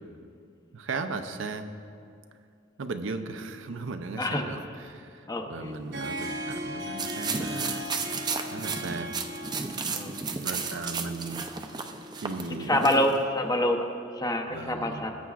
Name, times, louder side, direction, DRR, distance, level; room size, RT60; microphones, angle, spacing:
voice 1, 0.7-1.7 2.8-7.8 8.5-9.1 10.4-11.5 12.1-13.1 14.5-15.0, right 3 dB, 75° right, 7 dB, 0.6 m, -36 dB
voice 2, 4.2-4.5 5.3-5.7 9.9-10.2 12.6-13.9 14.1-15.1, left 1 dB, 20° left, 4 dB, 0.7 m, -26 dB
Harp, 5.6-13.4, equal, 55° right, 0.9 m, -39 dB
sound 1, 7.0-13.2, right 5 dB, 20° right, 0.5 m, -33 dB
19.5 x 8.2 x 2.4 m, 2.4 s
head